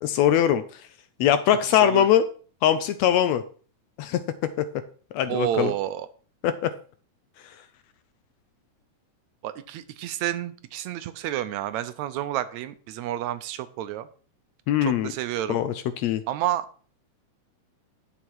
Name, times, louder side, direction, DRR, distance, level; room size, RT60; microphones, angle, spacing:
voice 1, 0.0-0.6 1.2-2.2 2.6-3.4 4.0-4.2 4.6-4.7 5.1-5.7 6.4-6.7 14.7-15.1 15.5-16.2, left 10 dB, 75° left, 11 dB, 1.7 m, -21 dB
voice 2, 5.3-6.1 9.4-14.1 14.8-15.6 16.3-16.7, right 12 dB, 80° right, 12 dB, 1.9 m, -30 dB
10.5 x 7.0 x 4.6 m, 0.41 s
omnidirectional pair, 3.4 m